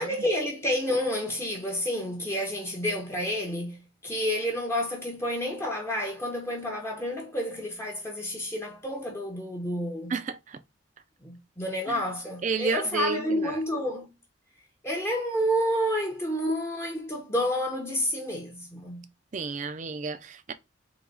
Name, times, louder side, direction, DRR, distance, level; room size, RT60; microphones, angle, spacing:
voice 1, 0.0-10.1 11.2-14.1 14.8-19.1, equal, 15° left, 0.7 m, -29 dB
voice 2, 10.1-10.6 12.4-13.6 19.3-20.5, right 5 dB, 40° right, 0.4 m, -31 dB
3.9 x 2.9 x 4.6 m
head